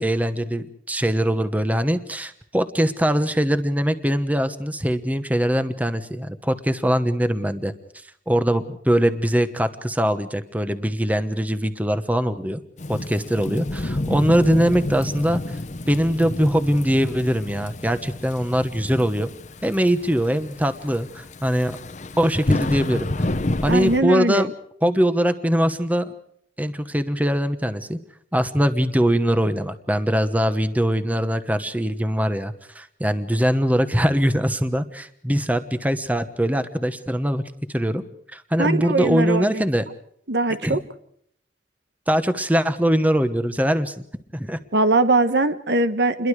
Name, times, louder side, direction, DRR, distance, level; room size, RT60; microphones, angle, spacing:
voice 1, 0.0-7.7 8.3-12.6 12.9-15.6 15.9-19.3 19.6-21.8 22.2-23.3 23.6-24.5 24.8-26.1 26.6-28.0 28.3-37.4 37.7-38.0 38.3-39.8 40.6-40.8 42.1-43.9 44.3-44.6, equal, 10° right, 10 dB, 1.1 m, -22 dB
Thunderstorm / Rain, 12.8-24.0, left 1 dB, 40° left, 0.9 m, -29 dB
voice 2, 23.7-24.5 38.6-39.6 40.3-40.8 44.7-46.3, right 2 dB, 70° right, 11 dB, 1.3 m, -21 dB
29.0 x 22.5 x 4.9 m, 0.68 s
head